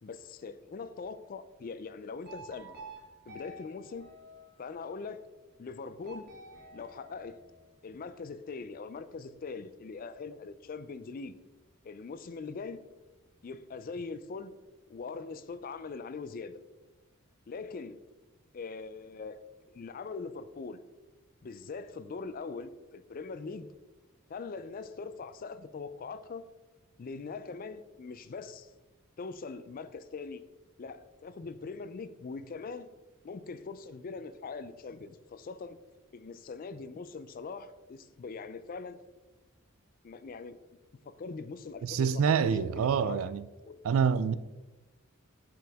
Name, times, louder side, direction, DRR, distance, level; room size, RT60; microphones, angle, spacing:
voice 1, 0.0-2.7 3.3-4.1 4.6-5.2 5.6-6.3 6.7-7.4 7.8-11.3 11.8-12.8 13.4-14.5 14.9-16.6 17.5-18.0 18.5-19.4 19.7-20.8 21.4-23.7 24.3-26.4 27.0-28.7 29.2-30.4 30.8-32.9 33.2-35.8 36.1-39.0 40.0-40.6 41.0-42.4 42.8-43.2 43.7-43.8, left 4 dB, 40° left, 0.4 m, -42 dB
sound 1, 2.2-4.9 6.0-7.8, right 1 dB, 45° right, 1.4 m, -50 dB
voice 2, 41.8-43.5 43.8-44.4, right 6 dB, 65° right, 0.3 m, -26 dB
7.5 x 4.9 x 3.5 m
head